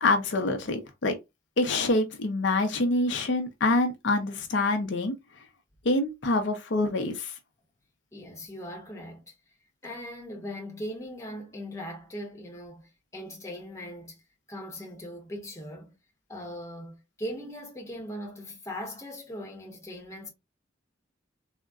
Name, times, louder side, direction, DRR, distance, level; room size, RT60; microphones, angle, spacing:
voice 1, 0.0-1.1 1.6-5.1 5.8-7.3, left 2 dB, 70° left, 0.6 m, -26 dB
voice 2, 8.1-9.3 9.8-14.2 14.5-15.9 16.3-20.3, equal, 15° left, 0.8 m, -39 dB
3.5 x 2.1 x 2.4 m
head